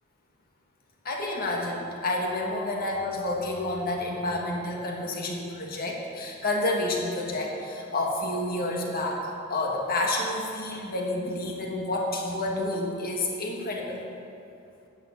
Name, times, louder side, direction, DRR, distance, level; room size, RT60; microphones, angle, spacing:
voice 1, 1.0-14.0, left 2 dB, 45° left, -1 dB, 1.8 m, -29 dB
10.5 x 7.5 x 7.1 m, 2.7 s
head